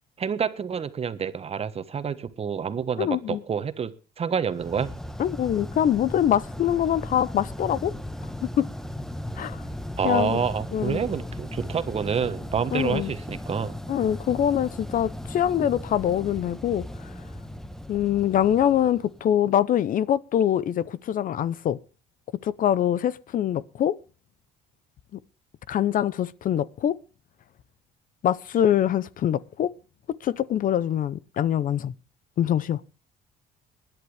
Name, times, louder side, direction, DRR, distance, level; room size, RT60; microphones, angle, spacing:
voice 1, 0.2-3.9 4.2-4.9 10.0-13.8, right 7 dB, 35° right, 1.4 m, -28 dB
voice 2, 3.0-3.4 5.2-7.9 8.4-8.6 9.4-9.6 10.0-10.4 10.7-11.0 12.7-13.1 13.9-17.1 17.9-21.8 22.4-24.0 25.7-26.9 28.2-29.7 30.2-31.9 32.4-32.8, left 10 dB, 55° left, 0.7 m, -24 dB
sound 1, 4.5-19.6, left 1 dB, 5° left, 1.1 m, -37 dB
20.5 x 11.0 x 3.4 m
cardioid pair, 110°, 17 cm